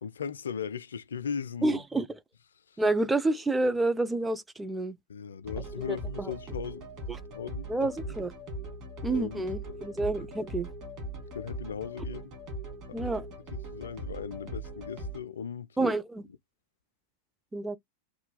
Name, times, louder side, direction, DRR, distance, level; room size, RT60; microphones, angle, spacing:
voice 1, 0.0-1.8 2.7-2.8 5.1-6.9 7.3-7.9 9.1-9.4 9.8-9.9 10.2-10.3 11.3-12.3 12.9-13.0 13.7-15.9, left 7 dB, 70° left, 0.3 m, -38 dB
voice 2, 1.6-2.2 2.8-5.0 5.9-6.3 7.1-7.2 7.7-8.3 9.0-10.7 12.9-13.3 15.8-16.3 17.5-17.8, right 2 dB, 10° right, 0.4 m, -29 dB
sound 1, 5.4-15.2, right 1 dB, 40° right, 1.6 m, -40 dB
3.0 x 2.3 x 3.8 m
figure-of-eight pair, 90°, 0 cm